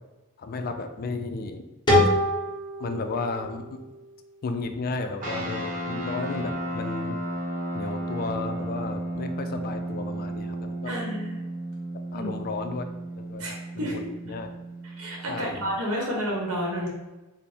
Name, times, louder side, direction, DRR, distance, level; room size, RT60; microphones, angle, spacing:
voice 1, 0.4-1.6 2.8-3.8 4.4-7.2 7.7-10.9 12.1-12.9 13.2-13.5 13.8-14.5 15.3-15.6, left 3 dB, 45° left, 7 dB, 0.3 m, -33 dB
sound 1, 1.9-4.7, left 1 dB, 20° left, 1.0 m, -25 dB
sound 2, 5.2-15.9, right 1 dB, 40° right, 0.7 m, -34 dB
voice 2, 10.8-11.4 12.1-12.3 13.4-14.1 14.8-16.9, equal, 90° right, -2 dB, 0.9 m, -30 dB
3.3 x 2.0 x 4.2 m, 1.1 s
head